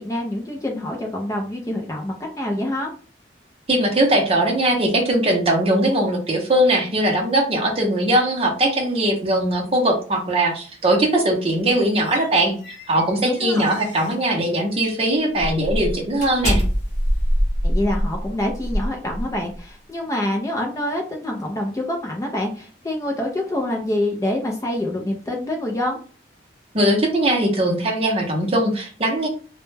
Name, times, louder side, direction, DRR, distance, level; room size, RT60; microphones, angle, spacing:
voice 1, 0.0-2.9 13.2-13.7 17.6-26.0, left 1 dB, 15° left, 0 dB, 0.3 m, -26 dB
voice 2, 3.7-16.6 26.7-29.3, right 1 dB, 30° right, 1 dB, 0.6 m, -20 dB
sound 1, 11.4-14.2 14.7-15.0 15.4-19.6, equal, 40° left, 0.7 m, -25 dB
2.1 x 2.1 x 3.1 m, 0.39 s
head